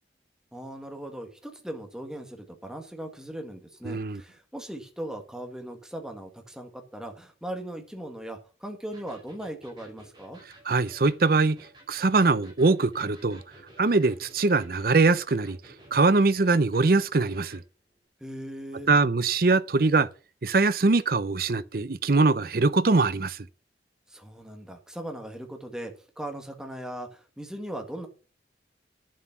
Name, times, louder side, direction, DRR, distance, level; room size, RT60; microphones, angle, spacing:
voice 1, 0.5-10.4 18.2-18.9 24.1-28.1, right 1 dB, 5° right, 1.8 m, -39 dB
voice 2, 3.8-4.2 10.7-11.6 11.9-13.4 13.8-15.6 15.9-17.6 18.9-20.1 20.4-23.4, right 3 dB, 55° right, 0.7 m, -22 dB
Electric guitar, 8.9-17.7, right 1 dB, 25° right, 4.7 m, -53 dB
11.0 x 7.5 x 5.9 m
head